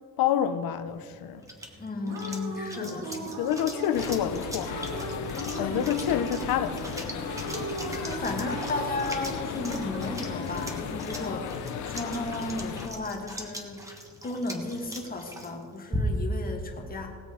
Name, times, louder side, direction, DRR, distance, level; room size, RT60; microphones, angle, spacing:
voice 1, 0.2-1.4 2.8-2.9 3.4-4.8 5.6-7.0, left 9 dB, 85° left, 0.9 m, -28 dB
sound 1, 0.9-16.4, equal, 10° right, 1.4 m, -41 dB
sound 2, 1.7-12.8, right 1 dB, 75° right, 3.7 m, -38 dB
voice 2, 1.8-3.4 5.6-5.8 8.0-17.2, left 2 dB, 25° left, 1.7 m, -34 dB
sound 3, 3.9-12.9, left 8 dB, 55° left, 0.8 m, -36 dB
19.5 x 7.8 x 4.9 m
cardioid pair, 165°, 35 cm